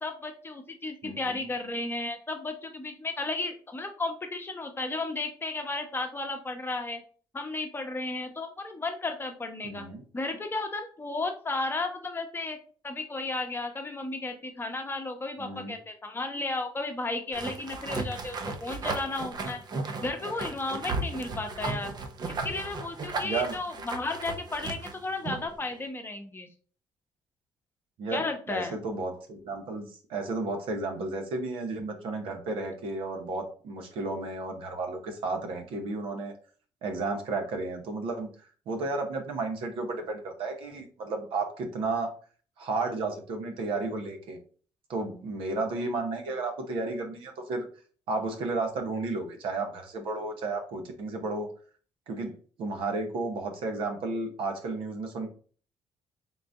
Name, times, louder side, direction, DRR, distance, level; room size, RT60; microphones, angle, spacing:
voice 1, 0.0-7.0 7.3-9.8 10.1-12.6 12.8-19.6 20.0-21.9 22.3-26.5 28.1-28.8, left 2 dB, 25° left, 5 dB, 0.9 m, -34 dB
voice 2, 1.0-1.5 9.6-10.0 15.4-15.8 23.2-23.6 28.0-36.3 36.8-38.3 38.7-42.1 42.6-44.4 44.9-47.7 48.1-51.5 52.1-55.3, right 3 dB, 75° right, 4 dB, 0.9 m, -33 dB
sound 1, 17.3-25.5, right 3 dB, 50° right, 0.6 m, -35 dB
3.9 x 2.6 x 3.4 m, 0.42 s
cardioid pair, 80°, 9 cm